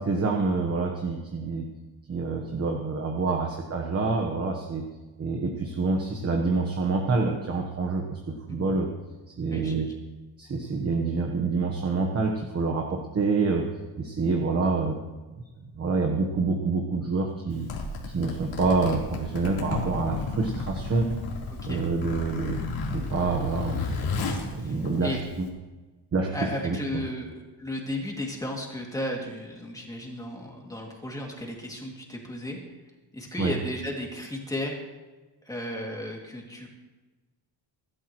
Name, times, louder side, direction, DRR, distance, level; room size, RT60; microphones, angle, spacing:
voice 1, 0.0-1.7 2.1-4.8 5.2-8.9 9.4-9.9 10.4-15.0 15.6-17.7 18.0-21.2 21.6-22.6 22.9-23.8 24.5-25.5 26.1-26.4 26.6-27.0 33.4-33.5, right 4 dB, 30° right, 2 dB, 1.2 m, -27 dB
voice 2, 9.5-9.9 21.5-21.8 24.6-25.2 26.3-27.3 27.6-32.6 33.1-34.8 35.4-36.7, left 1 dB, 5° left, -1 dB, 2.5 m, -34 dB
Zipper (clothing), 17.5-25.5, left 3 dB, 80° left, 3.8 m, -33 dB
23.0 x 12.5 x 3.1 m, 1.2 s
cardioid pair, 170°, 47 cm